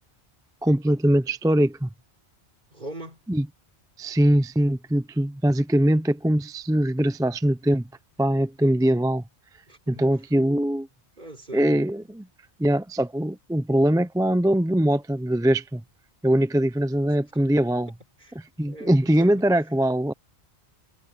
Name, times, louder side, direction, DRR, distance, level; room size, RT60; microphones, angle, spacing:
voice 1, 0.6-1.9 3.3-3.4 4.0-7.8 8.2-9.2 9.9-10.9 11.5-12.3 12.6-15.8 16.2-17.9 18.6-20.1, right 1 dB, 5° right, 0.4 m, -22 dB
voice 2, 2.7-3.2 9.7-10.1 11.2-11.9 18.2-19.6, right 1 dB, 45° right, 3.7 m, -41 dB
omnidirectional pair, 1.1 m